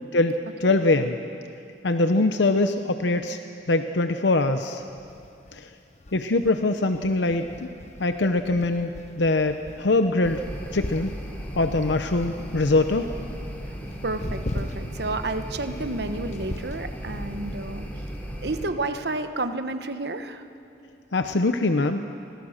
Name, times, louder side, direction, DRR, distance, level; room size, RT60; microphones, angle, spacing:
voice 1, 0.1-1.2 1.8-3.4 3.7-4.8 5.5-5.7 6.1-7.7 8.0-8.9 9.2-10.4 10.7-11.1 11.5-13.1 21.1-22.0, left 2 dB, 80° left, 7 dB, 0.9 m, -23 dB
sound 1, 4.8-17.6, left 1 dB, 40° left, 0.9 m, -40 dB
sound 2, 10.2-18.7, equal, 10° left, 2.9 m, -36 dB
voice 2, 14.0-17.9 18.4-20.4, right 2 dB, 65° right, 9 dB, 1.2 m, -30 dB
27.0 x 21.5 x 6.6 m, 2.5 s
head